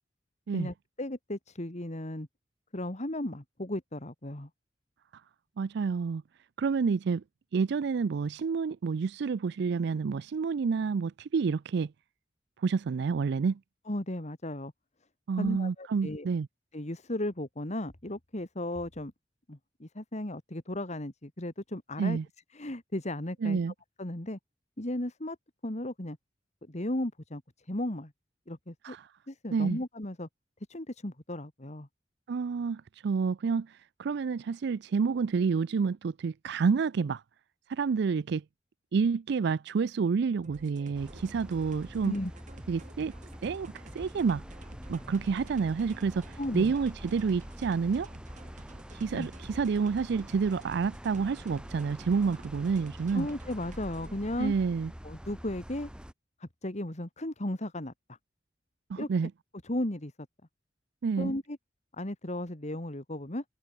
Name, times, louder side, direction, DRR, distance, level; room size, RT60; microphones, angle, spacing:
voice 1, 0.5-2.3 2.7-4.5 13.9-14.7 15.4-16.3 16.7-19.1 19.5-22.2 22.5-23.6 24.0-24.4 24.8-25.4 25.6-26.2 26.7-28.1 28.5-29.0 29.3-30.3 30.7-31.9 42.0-42.3 46.4-46.7 49.1-49.3 53.1-54.5 55.0-55.9 56.4-57.9 59.0-59.1 59.6-60.1 61.2-61.6 62.0-63.4, left 1 dB, 40° left, 2.5 m, -35 dB
voice 2, 5.6-6.2 6.6-7.2 7.5-11.9 12.6-13.6 15.3-16.5 22.0-22.3 23.4-23.7 28.8-29.1 29.5-29.8 32.3-37.2 37.7-38.4 38.9-42.1 42.7-43.1 43.4-44.4 44.9-48.1 48.9-53.3 54.4-54.9 58.9-59.3 61.0-61.3, right 5 dB, 65° right, 0.4 m, -29 dB
sound 1, 40.4-54.2, right 2 dB, 45° right, 2.1 m, -52 dB
sound 2, 40.9-56.1, equal, 5° right, 1.3 m, -46 dB
head